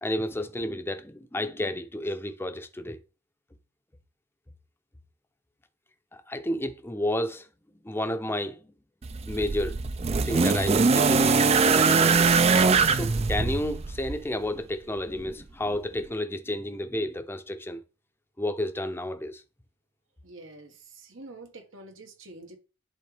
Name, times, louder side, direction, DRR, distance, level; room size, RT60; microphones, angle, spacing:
voice 1, 0.0-3.0 6.1-7.5 7.8-8.6 9.3-9.8 10.3-12.3 12.9-17.8 18.4-19.4, left 1 dB, 10° left, 0.6 m, -31 dB
sound 1, 9.0-14.2 15.3-15.4, right 4 dB, 30° right, 0.4 m, -22 dB
voice 2, 20.2-22.6, right 2 dB, 85° right, 1.6 m, -46 dB
10.5 x 3.8 x 3.4 m
head